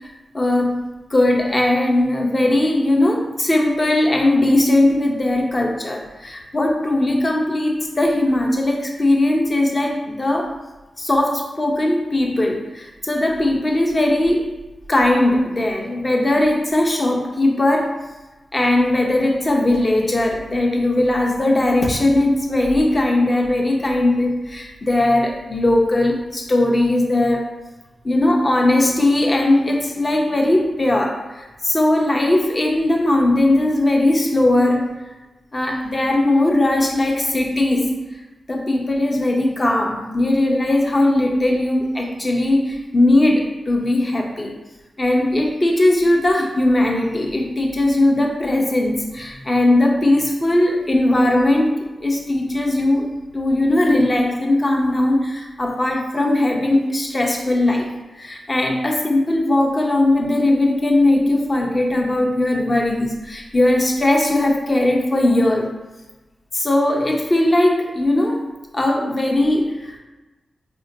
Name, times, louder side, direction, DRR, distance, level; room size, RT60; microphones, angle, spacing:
voice 1, 0.3-0.8 1.1-10.5 11.0-14.4 14.9-18.0 18.5-27.5 28.0-34.9 35.5-37.9 38.5-44.6 45.0-51.7 52.0-53.1 53.3-57.9 58.2-65.7 66.5-68.4 68.7-70.0, left 1 dB, 35° left, 1 dB, 0.7 m, -19 dB
4.3 x 2.7 x 2.7 m, 1.1 s
cardioid pair, 60°, 0 cm